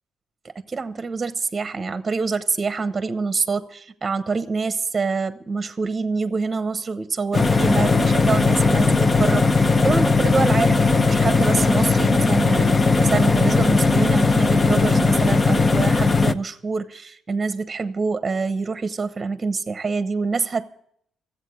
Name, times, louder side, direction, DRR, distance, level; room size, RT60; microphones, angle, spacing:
voice 1, 0.7-20.7, right 4 dB, 30° right, 0.9 m, -26 dB
sound 1, 7.3-16.3, left 4 dB, 30° left, 0.7 m, -18 dB
14.0 x 8.2 x 8.2 m
cardioid pair, 90°, 0 cm